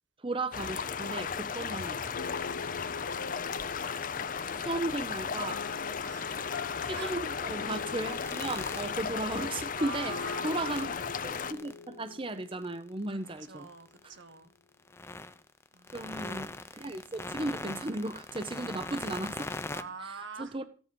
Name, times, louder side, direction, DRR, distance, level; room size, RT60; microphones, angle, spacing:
voice 1, 0.2-2.0 4.6-5.6 6.8-10.1 10.4-10.9 11.2-13.7 15.9-19.5 20.4-20.6, right 2 dB, 30° right, 0.7 m, -35 dB
sound 1, 0.5-11.5, left 6 dB, 45° left, 0.6 m, -35 dB
sound 2, 2.1-13.2, left 4 dB, 90° left, 0.6 m, -44 dB
voice 2, 2.5-3.1 6.0-6.4 6.9-7.1 8.9-9.1 9.7-10.7 13.1-14.5 15.7-16.2 19.7-20.6, right 4 dB, 85° right, 1.5 m, -45 dB
sound 3, 8.0-10.3 10.7-14.2 14.9-19.8, left 2 dB, 15° left, 0.8 m, -41 dB
15.0 x 10.0 x 5.3 m
head